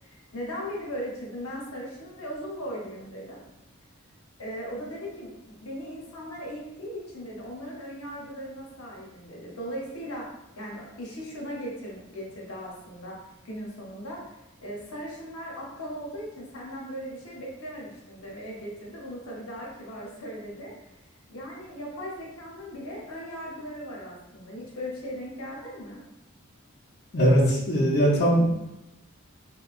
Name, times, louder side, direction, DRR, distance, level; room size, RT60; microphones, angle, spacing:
voice 1, 0.0-3.4 4.4-10.3 10.6-13.2 13.4-14.2 14.6-20.7 21.3-26.0, equal, 85° left, -3 dB, 0.8 m, -38 dB
voice 2, 27.1-28.5, equal, 50° left, -6 dB, 0.6 m, -20 dB
3.6 x 2.2 x 2.3 m, 0.91 s
head